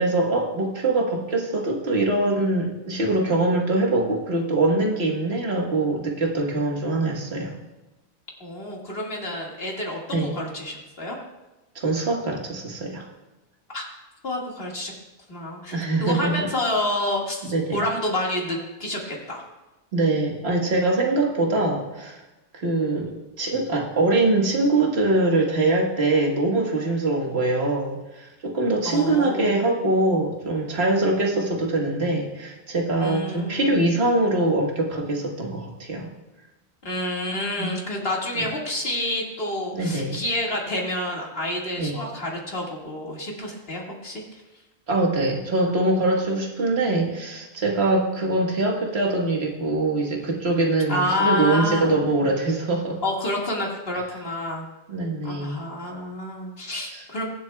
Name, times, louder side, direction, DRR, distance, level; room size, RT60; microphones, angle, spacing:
voice 1, 0.0-7.5 10.1-10.3 11.8-13.0 15.7-16.5 17.5-17.8 19.9-22.2 22.5-36.1 37.6-37.7 38.4-38.5 39.7-40.2 41.8-42.0 44.9-53.0 54.9-55.6 56.9-57.0, right 2 dB, 85° right, 0 dB, 1.8 m, -23 dB
voice 2, 8.4-11.2 13.7-13.9 14.2-14.9 15.3-17.4 17.7-19.4 28.8-29.6 33.0-33.7 36.8-44.2 50.9-52.0 53.0-54.7 55.2-57.3, left 1 dB, 70° left, -2 dB, 2.2 m, -28 dB
21.5 x 7.5 x 2.3 m, 1.1 s
omnidirectional pair, 1.0 m